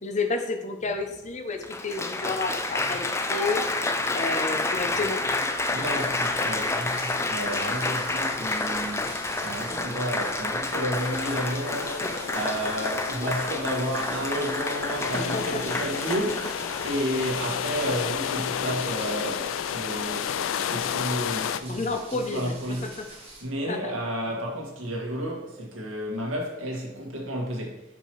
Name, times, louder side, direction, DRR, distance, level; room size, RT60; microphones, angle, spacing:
voice 1, 0.0-3.6 4.1-5.2 12.0-12.1 15.1-15.8 21.7-23.1 23.7-24.0, left 3 dB, 35° left, 0.8 m, -31 dB
Applause, 0.9-1.0 1.6-17.5 18.3-18.6, left 2 dB, 15° left, 0.4 m, -29 dB
sound 1, 5.4-23.4, right 2 dB, 30° right, 2.0 m, -46 dB
voice 2, 5.7-9.1 9.4-20.3 20.7-22.9 23.4-27.8, equal, 80° right, 1.7 m, -31 dB
sound 2, 11.0-21.6, left 8 dB, 80° left, 0.3 m, -32 dB
5.4 x 4.5 x 4.6 m
head